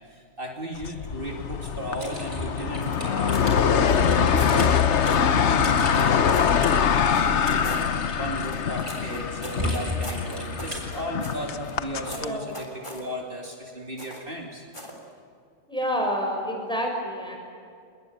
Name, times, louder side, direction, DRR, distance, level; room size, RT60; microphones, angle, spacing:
voice 1, 0.0-14.6, right 1 dB, 55° right, 0 dB, 2.8 m, -36 dB
sound 1, 0.8-12.3, left 7 dB, 80° left, 1.2 m, -24 dB
Typing, 2.0-10.9, equal, 25° right, 7.5 m, -35 dB
sound 2, 2.8-3.5 3.8-4.6 5.0-5.3 5.9-6.6 7.1-7.9 8.4-11.8 12.0-13.1 14.0-14.3 14.7-15.0, left 1 dB, 25° left, 3.5 m, -41 dB
voice 2, 12.1-12.6 15.7-17.4, equal, 5° left, 1 dB, 6.0 m, -28 dB
27.0 x 21.5 x 9.4 m, 2.4 s
omnidirectional pair, 1.2 m